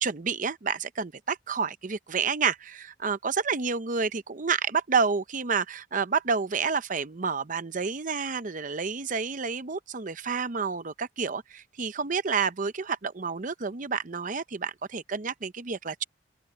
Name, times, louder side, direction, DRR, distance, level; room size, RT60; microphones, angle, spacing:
voice 1, 0.0-16.0, right 5 dB, 45° right, 0.8 m, -29 dB
open air
head